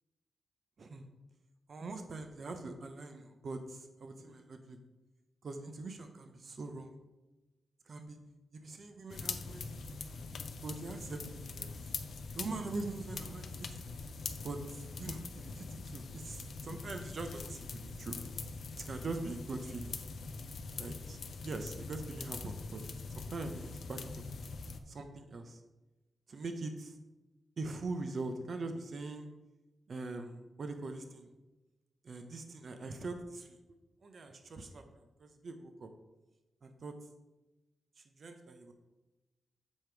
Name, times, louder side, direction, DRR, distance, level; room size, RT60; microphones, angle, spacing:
voice 1, 1.7-4.8 5.4-7.0 7.9-8.2 8.5-10.2 10.6-11.7 12.3-13.8 14.4-18.2 18.8-20.0 20.8-21.2 21.4-22.8 23.2-24.0 24.9-25.6 26.3-27.0 27.6-29.3 29.9-31.3 32.0-33.6 34.0-35.9 36.6-36.9 38.0-38.7, right 3 dB, 55° right, 6 dB, 0.7 m, -43 dB
sound 1, 9.1-24.8, left 4 dB, 70° left, 0.6 m, -43 dB
7.4 x 5.0 x 4.6 m, 1.1 s
wide cardioid pair, 115°, 0 cm